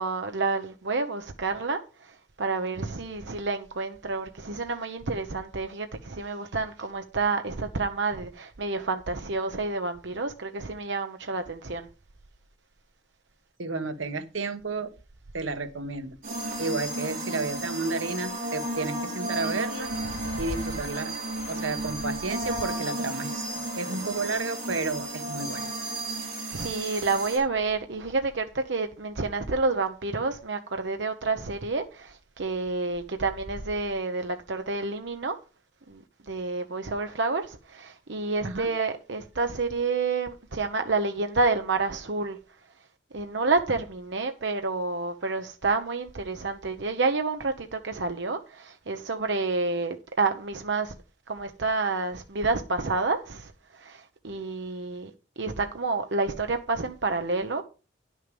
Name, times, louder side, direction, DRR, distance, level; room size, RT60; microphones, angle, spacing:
voice 1, 0.0-1.8 2.4-11.9 26.5-35.3 35.9-36.0 36.3-42.4 43.1-50.9 51.3-53.5 53.8-55.1 55.4-57.6, right 3 dB, 65° right, 0.9 m, -29 dB
voice 2, 13.6-14.9 15.3-16.2 16.6-19.9 20.4-21.1 21.5-23.5 23.8-25.7 38.4-38.7, right 3 dB, 85° right, 1.2 m, -31 dB
sound 1, 16.2-27.4, right 1 dB, 45° right, 3.9 m, -33 dB
10.5 x 6.5 x 5.2 m
head